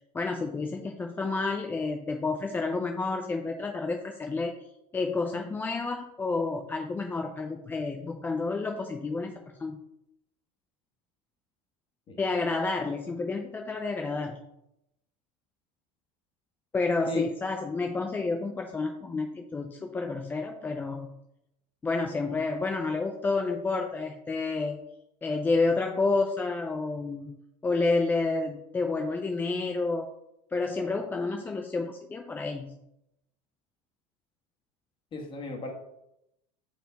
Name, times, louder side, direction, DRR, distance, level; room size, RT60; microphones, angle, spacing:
voice 1, 0.1-4.5 4.9-9.8 12.2-14.4 16.7-21.1 21.8-24.8 25.2-30.1 30.5-32.8, left 3 dB, 10° left, 4 dB, 0.3 m, -30 dB
voice 2, 35.1-35.7, left 3 dB, 25° left, 1 dB, 1.4 m, -34 dB
6.3 x 4.6 x 3.9 m, 0.83 s
supercardioid pair, 140°, 18 cm